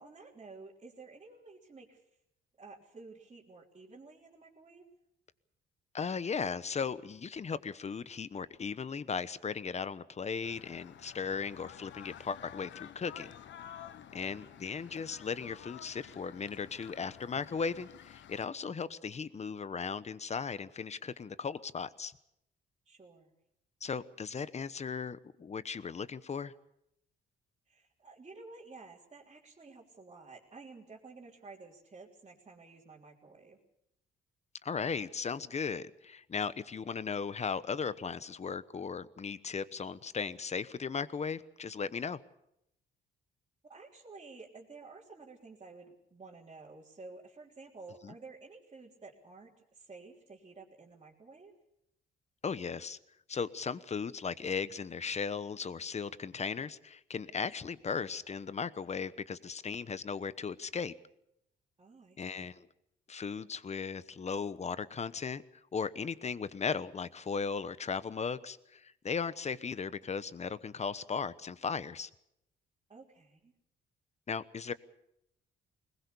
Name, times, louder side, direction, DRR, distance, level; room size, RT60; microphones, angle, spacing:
voice 1, 0.0-2.0 2.6-4.9 14.2-14.6 22.9-23.3 27.7-33.6 43.7-51.5 61.8-62.5 72.9-73.5, right 3 dB, 30° right, -6 dB, 3.5 m, -52 dB
voice 2, 5.9-13.3 14.1-22.1 23.8-26.5 34.6-42.2 48.0-48.1 52.4-53.0 53.3-60.9 62.2-62.7 63.1-65.4 65.7-72.1 74.3-74.7, left 5 dB, 35° left, 15 dB, 1.0 m, -37 dB
sound 1, 10.4-18.5, left 10 dB, 70° left, 1.1 m, -51 dB
21.5 x 20.0 x 7.0 m, 0.80 s
cardioid pair, 90°, 20 cm